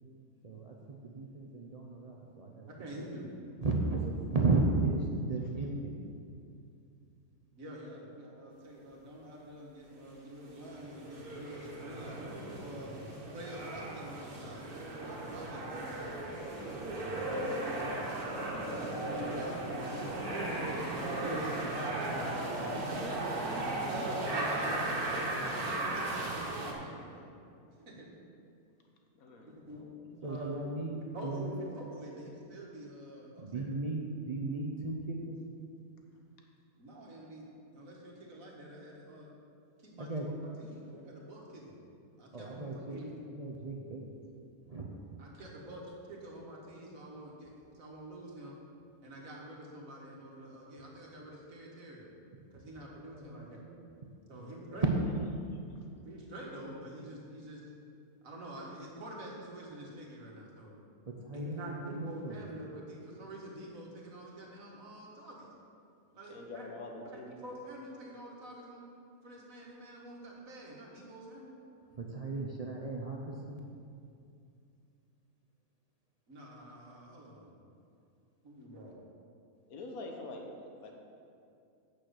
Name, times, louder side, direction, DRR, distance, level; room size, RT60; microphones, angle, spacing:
voice 1, 0.4-2.7 3.0-3.1 3.6-6.0 16.7-17.5 30.2-31.6 33.4-35.3 40.0-40.3 42.3-43.0 43.3-44.1 44.7-44.9 53.1-53.8 54.3-54.7 61.2-62.4 72.0-73.6, right 3 dB, 35° right, -1 dB, 0.7 m, -35 dB
voice 2, 2.8-3.3 7.5-12.9 13.3-16.3 17.3-18.1 18.5-20.1 20.6-21.6 23.7-27.3 27.8-28.1 29.5-30.0 30.2-30.6 31.1-33.6 36.8-37.5 37.7-39.3 39.8-41.8 42.2-43.2 45.2-48.6 49.0-52.1 52.5-53.6 54.3-54.9 56.0-57.7 58.2-60.7 61.3-65.5 66.1-66.6 67.1-68.9 69.2-71.5 76.3-77.6 78.4-78.9, right 1 dB, 65° right, -3 dB, 2.1 m, -47 dB
sound 1, 10.6-26.7, right 2 dB, 85° right, 1.8 m, -36 dB
voice 3, 29.2-30.3 54.7-54.9 55.5-55.8 66.3-67.3 79.7-80.9, left 2 dB, 75° left, 2 dB, 1.5 m, -46 dB
8.9 x 6.4 x 6.4 m, 2.5 s
omnidirectional pair, 1.5 m